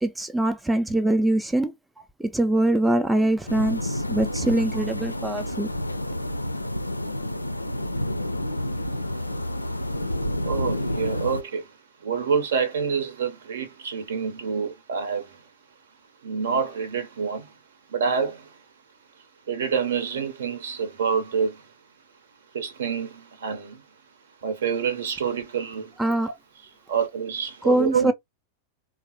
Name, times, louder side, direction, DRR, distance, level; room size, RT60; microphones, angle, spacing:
voice 1, 0.0-1.7 2.2-5.7 26.0-26.3 27.6-28.1, right 1 dB, 5° right, 0.3 m, -23 dB
sound 1, 3.5-11.4, left 1 dB, 85° left, 0.3 m, -29 dB
voice 2, 10.4-11.6 12.0-15.2 16.2-17.5 17.9-18.4 19.5-21.5 22.5-23.8 24.4-25.9 26.9-28.1, right 6 dB, 60° right, 0.8 m, -27 dB
3.6 x 2.1 x 2.8 m
figure-of-eight pair, 90°, 0 cm